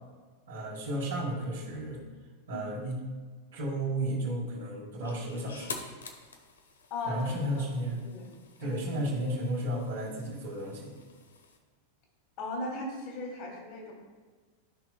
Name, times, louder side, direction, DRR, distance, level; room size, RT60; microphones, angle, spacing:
voice 1, 0.5-2.0 2.5-3.0 3.5-5.8 7.1-8.0 8.6-10.9, right 1 dB, 65° right, -7 dB, 2.3 m, -33 dB
sound 1, 5.0-11.6, left 4 dB, 70° left, 1.0 m, -48 dB
voice 2, 6.9-7.2 7.6-7.7 8.0-8.3 8.6-9.0 12.4-13.9, left 2 dB, 40° left, 0 dB, 2.4 m, -37 dB
13.5 x 6.0 x 2.3 m, 1.4 s
figure-of-eight pair, 90°, 0 cm